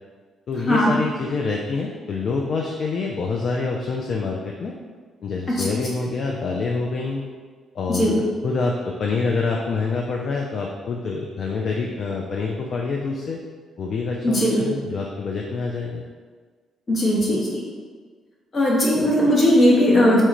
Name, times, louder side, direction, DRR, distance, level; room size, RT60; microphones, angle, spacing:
voice 1, 0.5-4.7 5.2-7.2 7.7-13.4 13.8-16.0, left 4 dB, 60° left, 0 dB, 0.4 m, -26 dB
voice 2, 14.2-14.6 16.9-17.6 18.5-20.2, equal, 45° left, -4 dB, 1.1 m, -18 dB
4.2 x 2.4 x 3.0 m, 1.5 s
hypercardioid pair, 50°, 0 cm